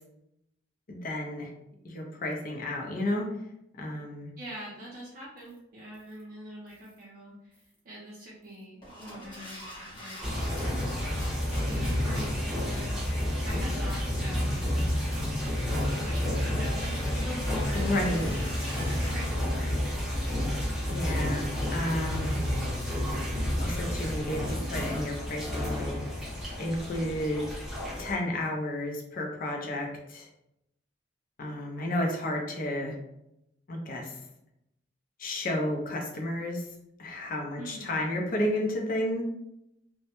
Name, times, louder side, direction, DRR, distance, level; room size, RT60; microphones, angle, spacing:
voice 1, 0.9-1.5 1.8-3.3 3.8-4.3 17.7-18.3 20.9-22.4 23.6-26.0 26.6-27.4 28.0-30.3 31.4-33.0 33.7-34.1 35.2-36.6 37.0-39.2, left 1 dB, 50° left, 1 dB, 0.5 m, -32 dB
voice 2, 4.4-15.7 15.9-19.7 37.5-38.1, equal, 50° right, -6 dB, 0.5 m, -44 dB
sound 1, 5.4-5.6 5.9-6.2 6.7-7.0 7.5-7.8 8.4-19.1, equal, 25° left, 0.9 m, -45 dB
sound 2, 10.2-28.1, left 1 dB, ahead, 0.6 m, -30 dB
2.1 x 2.0 x 2.9 m, 0.83 s
head